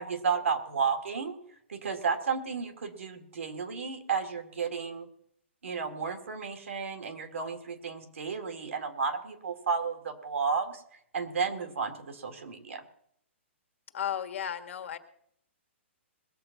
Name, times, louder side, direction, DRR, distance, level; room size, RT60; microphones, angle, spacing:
voice 1, 0.0-1.4 1.7-5.1 5.6-10.8 11.1-12.8, right 5 dB, 90° right, 6 dB, 2.2 m, -32 dB
voice 2, 13.9-15.0, left 9 dB, 75° left, 7 dB, 1.5 m, -34 dB
21.0 x 7.1 x 5.9 m, 0.68 s
hypercardioid pair, 145°, 7 cm